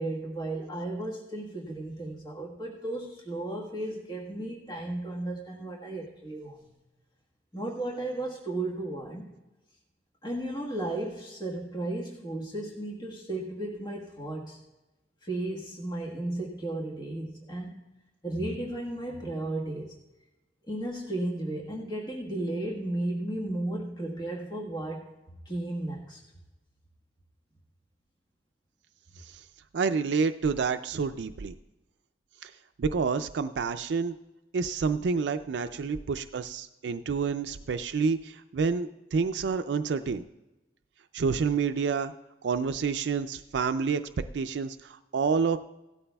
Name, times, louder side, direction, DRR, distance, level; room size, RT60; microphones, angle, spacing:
voice 1, 0.0-6.6 7.5-9.3 10.2-14.6 15.2-17.7 18.2-20.0 20.7-25.1 25.4-26.2, right 1 dB, 25° left, -2 dB, 1.4 m, -34 dB
voice 2, 29.7-31.6 32.4-32.5 32.8-34.1 34.5-40.2 41.1-42.1 42.4-44.0 44.3-45.6, right 5 dB, 80° right, 9 dB, 0.4 m, -28 dB
17.5 x 12.5 x 2.3 m, 1.1 s
head